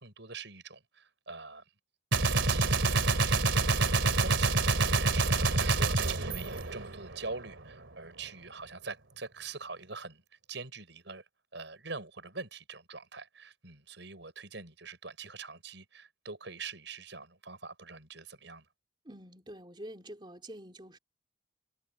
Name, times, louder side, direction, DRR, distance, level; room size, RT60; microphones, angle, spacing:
voice 1, 0.0-1.6 2.5-3.5 3.9-10.2 10.5-11.2 11.5-18.7, right 4 dB, 70° right, 5.7 m, -44 dB
Gunshot gunfire, 2.1-7.3, right 3 dB, 90° right, 2.9 m, -27 dB
voice 2, 19.0-21.0, right 1 dB, 25° right, 4.1 m, -46 dB
head